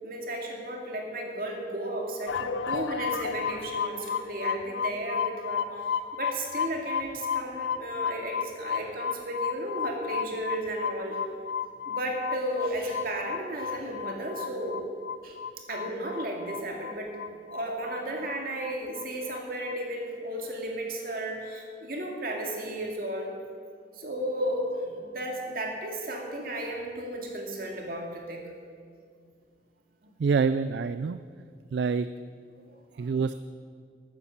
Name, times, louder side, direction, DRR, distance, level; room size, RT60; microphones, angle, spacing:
voice 1, 0.0-5.7 6.1-11.2 11.9-14.8 15.2-15.4 15.7-23.3 24.0-28.4 30.0-30.1 32.6-33.1, right 1 dB, 50° right, 1 dB, 2.3 m, -34 dB
sound 1, 2.3-19.0 19.3-19.7, left 7 dB, 90° left, 0.5 m, -33 dB
voice 2, 30.2-31.2 31.7-32.1 33.0-33.3, right 5 dB, 70° right, 13 dB, 0.3 m, -26 dB
12.5 x 9.5 x 7.4 m, 2.1 s
head